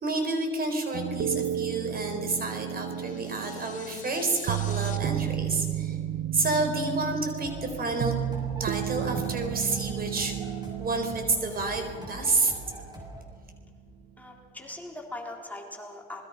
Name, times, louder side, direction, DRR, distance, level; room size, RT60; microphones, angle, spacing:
voice 1, 0.0-6.0 6.3-8.1 8.6-10.4 10.8-12.5, right 3 dB, 50° right, 5 dB, 4.1 m, -29 dB
sound 1, 0.9-13.0 13.3-13.4, right 11 dB, 70° right, 0.7 m, -33 dB
sound 2, 2.9-5.0, left 6 dB, 40° left, 3.0 m, -45 dB
sound 3, 7.4-13.2, right 1 dB, 20° right, 6.7 m, -43 dB
voice 2, 14.2-16.3, left 2 dB, 10° left, 0 dB, 4.0 m, -40 dB
27.5 x 20.5 x 5.8 m, 2.4 s
cardioid pair, 90°, 20 cm